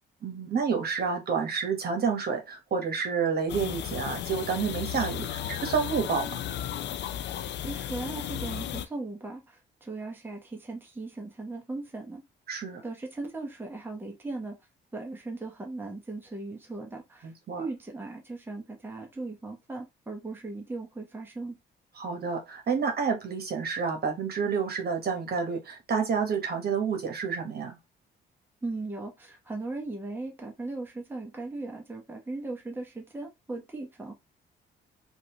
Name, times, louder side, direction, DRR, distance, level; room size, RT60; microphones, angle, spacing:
voice 1, 0.2-6.4 12.5-12.8 17.2-17.7 22.0-27.8, right 6 dB, 50° right, 1.2 m, -29 dB
sound 1, 3.5-8.9, left 10 dB, 60° left, 0.4 m, -34 dB
voice 2, 7.6-12.2 12.8-14.6 14.9-17.3 17.6-21.6 28.6-34.1, right 2 dB, 10° right, 1.0 m, -38 dB
3.1 x 2.6 x 2.9 m
cardioid pair, 90°, 20 cm